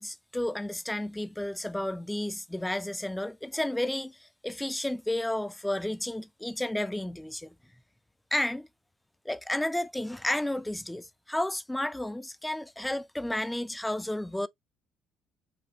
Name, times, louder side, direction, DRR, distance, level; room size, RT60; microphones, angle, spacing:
voice 1, 0.0-7.5 8.3-8.7 9.3-14.5, left 1 dB, 10° left, 0.4 m, -32 dB
5.9 x 2.4 x 2.9 m
supercardioid pair, 65°, 0 cm